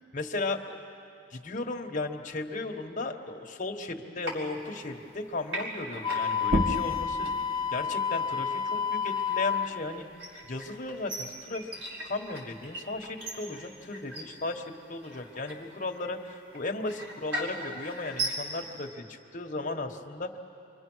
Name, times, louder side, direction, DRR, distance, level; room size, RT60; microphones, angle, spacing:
voice 1, 0.1-0.8 1.3-7.3 7.7-10.1 10.4-20.4, left 2 dB, 40° left, 3 dB, 1.4 m, -36 dB
sound 1, 4.2-5.2 5.5-18.9, right 1 dB, 85° right, 5.0 m, -40 dB
Wind instrument woodwind instrument, 6.0-9.8, left 7 dB, 25° left, 1.1 m, -29 dB
sound 2, 6.4-11.6 12.0-13.8, equal, 35° right, 1.2 m, -36 dB
28.5 x 25.0 x 6.3 m, 2.7 s
head